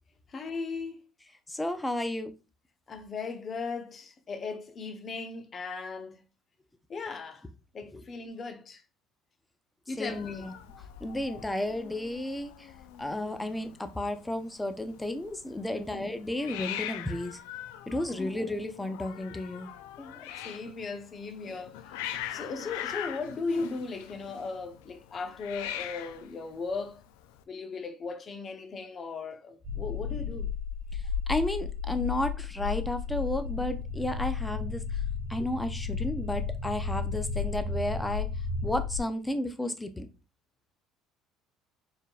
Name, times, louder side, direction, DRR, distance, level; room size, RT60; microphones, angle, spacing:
voice 1, 0.3-1.0 2.9-6.2 6.9-7.4 7.7-8.8 9.9-10.5 15.7-16.0 18.2-18.3 20.0-21.8 22.3-27.0 27.5-30.5, left 4 dB, 40° left, 0.8 m, -37 dB
voice 2, 1.5-2.3 7.9-8.0 10.0-10.5 11.0-12.5 13.0-17.4 17.9-19.7 31.3-34.9 35.3-38.3 38.6-40.1, left 1 dB, 10° left, 0.6 m, -32 dB
Hiss, 10.1-27.4, left 11 dB, 85° left, 0.4 m, -42 dB
sound 1, 29.6-39.0, left 5 dB, 55° right, 1.1 m, -33 dB
4.4 x 3.4 x 2.4 m
supercardioid pair, 75°, 0 cm